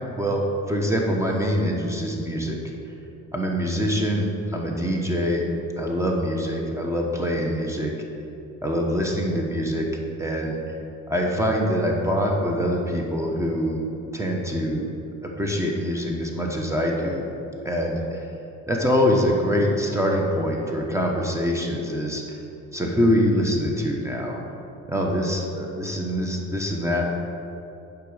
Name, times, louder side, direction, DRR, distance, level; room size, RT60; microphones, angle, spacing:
voice 1, 0.1-2.6 3.3-5.4 5.8-7.9 8.6-9.9 10.2-10.6 11.1-13.8 14.1-14.9 15.2-17.2 17.6-18.3 18.7-22.2 22.7-24.4 24.9-27.0, equal, 10° right, -1 dB, 1.3 m, -24 dB
10.0 x 5.3 x 5.1 m, 2.9 s
cardioid pair, 90°, 30 cm